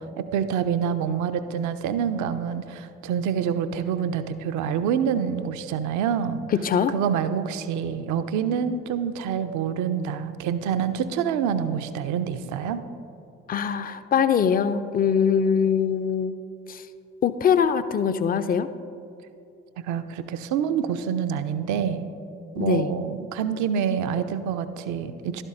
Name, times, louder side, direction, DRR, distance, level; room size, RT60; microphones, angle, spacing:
voice 1, 0.2-6.4 6.9-12.8 19.9-22.1 22.5-25.4, right 8 dB, 60° right, 11 dB, 0.6 m, -26 dB
voice 2, 6.5-6.9 13.5-16.3 16.7-16.8 17.2-18.7 22.6-22.9, left 7 dB, 25° left, 12 dB, 0.4 m, -22 dB
11.5 x 9.8 x 2.5 m, 2.6 s
figure-of-eight pair, 45°, 34 cm